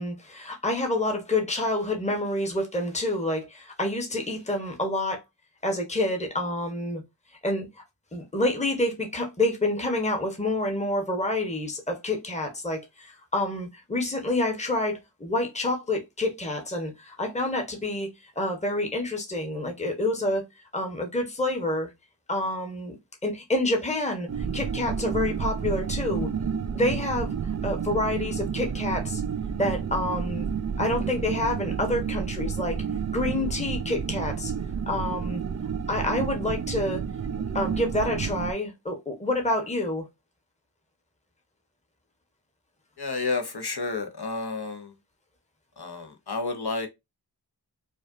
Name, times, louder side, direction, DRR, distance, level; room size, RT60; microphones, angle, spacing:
voice 1, 0.0-5.2 5.6-7.0 7.4-7.8 8.1-20.4 20.7-21.9 22.3-23.0 23.2-26.3 26.7-27.3 27.6-29.2 29.6-30.5 30.8-32.8 33.1-34.5 34.9-35.4 35.9-37.0 37.5-40.0, left 1 dB, 15° left, 1.1 m, -28 dB
sound 1, 24.3-38.5, right 7 dB, 40° right, 0.4 m, -30 dB
voice 2, 43.0-44.9 45.8-46.9, left 3 dB, 60° left, 0.9 m, -31 dB
4.9 x 2.4 x 2.6 m
wide cardioid pair, 55°, 45 cm